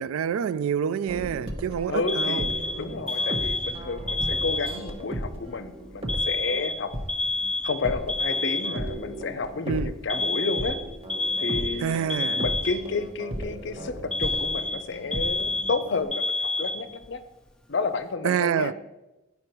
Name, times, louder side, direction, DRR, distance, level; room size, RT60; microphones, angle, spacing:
voice 1, 0.0-2.5 9.7-9.9 11.8-12.4 18.2-18.7, right 8 dB, 80° right, 0.3 m, -27 dB
sound 1, 1.1-16.0, right 1 dB, 25° right, 0.9 m, -36 dB
voice 2, 1.9-2.4 2.7-6.9 7.6-10.8 11.4-12.0 12.3-17.2 17.7-18.7, left 4 dB, 55° left, 0.6 m, -31 dB
Alarm, 2.1-5.0 6.1-9.1 10.1-13.1 14.1-17.1, left 2 dB, 5° left, 0.4 m, -28 dB
9.5 x 5.6 x 4.4 m
head